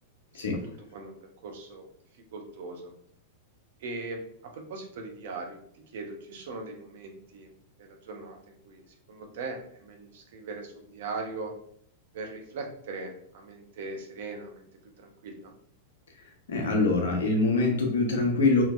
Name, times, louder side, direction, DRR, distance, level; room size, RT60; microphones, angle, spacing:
voice 1, 0.8-1.9 2.3-2.9 3.8-5.6 5.9-7.5 7.8-11.5 12.1-14.7 15.0-15.5, right 3 dB, 65° right, 3 dB, 0.7 m, -40 dB
voice 2, 16.5-18.6, left 3 dB, 75° left, 1 dB, 0.9 m, -24 dB
3.8 x 2.8 x 2.5 m, 0.67 s
hypercardioid pair, 100°, 0 cm